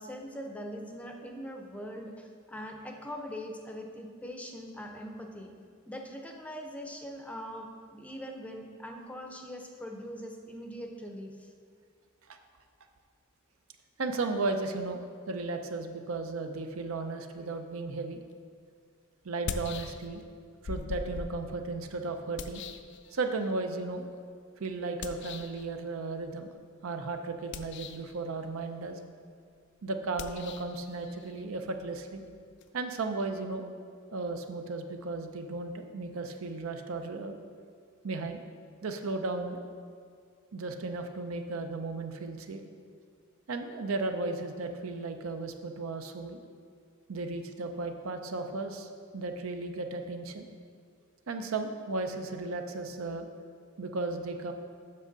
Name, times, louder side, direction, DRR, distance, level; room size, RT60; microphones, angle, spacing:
voice 1, 0.0-5.5 5.9-11.5, equal, 5° left, 2 dB, 0.5 m, -42 dB
voice 2, 14.0-18.2 19.2-20.2 20.6-22.6 23.1-24.1 24.6-26.5 26.8-29.0 29.8-32.2 32.7-33.7 34.1-37.4 38.0-38.4 38.8-39.6 40.5-42.6 43.5-46.4 47.1-50.5 51.3-53.3 53.8-54.5, right 3 dB, 75° right, 6 dB, 0.6 m, -35 dB
sound 1, 18.3-18.4 19.3-20.3 20.6-23.5 25.0-25.6 27.4-28.2 30.1-32.7, left 5 dB, 55° left, 0.4 m, -42 dB
7.6 x 6.2 x 3.9 m, 2.2 s
head